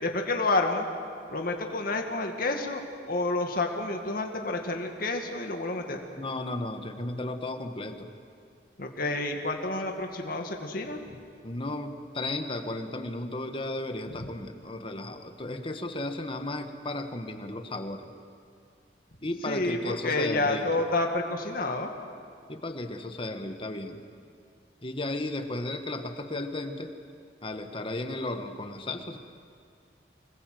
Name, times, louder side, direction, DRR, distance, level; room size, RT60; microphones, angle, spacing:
voice 1, 0.0-0.9 1.3-6.0 8.8-11.0 14.1-14.3 19.5-21.9, left 2 dB, 55° left, 3 dB, 2.1 m, -29 dB
voice 2, 6.2-8.1 11.4-18.1 19.2-20.7 22.5-24.0 24.8-26.9 27.4-29.2, left 2 dB, 30° left, 6 dB, 1.5 m, -34 dB
25.5 x 21.0 x 7.8 m, 2.4 s
head